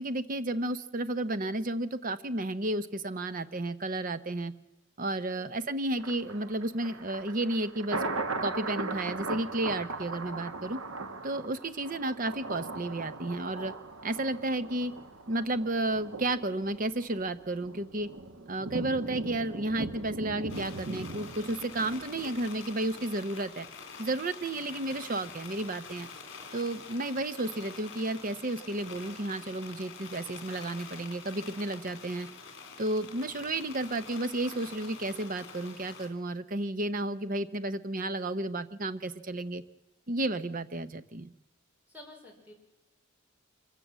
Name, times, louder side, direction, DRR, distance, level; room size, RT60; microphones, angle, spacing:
voice 1, 0.0-4.5 5.0-8.0 8.4-10.8 11.2-13.7 14.0-14.9 15.3-18.1 18.4-23.7 24.0-26.1 26.5-32.3 32.8-39.6 40.1-41.3, right 2 dB, 40° right, 12 dB, 0.8 m, -32 dB
Thunder, 6.0-23.1 23.5-23.6, right 3 dB, 75° right, 1.3 m, -39 dB
sound 1, 20.5-36.1, left 5 dB, 60° left, 3.6 m, -47 dB
voice 2, 41.9-42.5, left 1 dB, 10° right, 0 dB, 4.9 m, -50 dB
25.0 x 15.5 x 7.5 m, 0.99 s
head